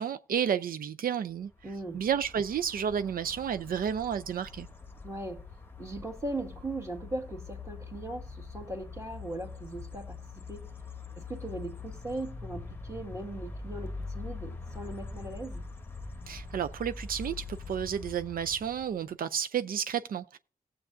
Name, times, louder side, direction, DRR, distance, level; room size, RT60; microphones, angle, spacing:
voice 1, 0.0-1.5 1.9-4.7 16.3-20.4, right 8 dB, 80° right, 0.4 m, -31 dB
sound 1, 1.5-19.1, left 3 dB, 15° left, 1.0 m, -43 dB
voice 2, 1.6-2.0 5.0-5.4 5.8-10.2 10.5-10.7 11.2-15.6, right 2 dB, 20° right, 1.8 m, -39 dB
19.0 x 7.7 x 2.5 m
wide cardioid pair, 135°, 15 cm